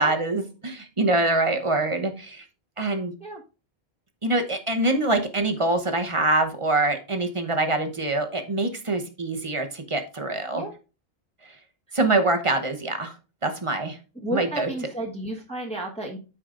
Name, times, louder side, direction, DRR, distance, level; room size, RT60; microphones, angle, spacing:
voice 1, 0.0-2.4 2.8-3.1 4.2-10.6 11.9-13.1 13.4-14.0 14.3-14.7, right 2 dB, 30° right, 6 dB, 1.0 m, -24 dB
voice 2, 14.2-16.2, right 1 dB, 5° left, -2 dB, 1.2 m, -32 dB
13.5 x 4.9 x 2.5 m, 0.33 s
omnidirectional pair, 1.1 m